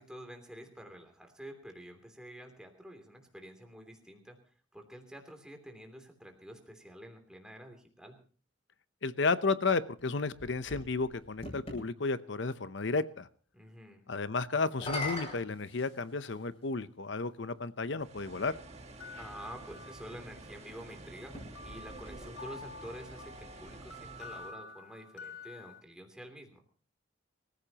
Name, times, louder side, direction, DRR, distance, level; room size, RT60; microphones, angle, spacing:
voice 1, 0.0-4.4 4.7-8.2 13.5-14.0 19.2-26.6, equal, 5° right, 3 dB, 3.0 m, -49 dB
voice 2, 9.0-13.3 14.1-18.5, left 4 dB, 65° left, 14 dB, 0.8 m, -32 dB
sound 1, 10.0-11.8 14.6-16.4 17.4-17.5 21.2-22.7, left 2 dB, 30° left, 6.8 m, -42 dB
sound 2, 18.0-24.5, right 2 dB, 35° right, 1.6 m, -50 dB
sound 3, 18.7-20.6 21.6-25.8, left 3 dB, 85° left, 2.1 m, -49 dB
25.5 x 15.0 x 3.0 m, 0.40 s
head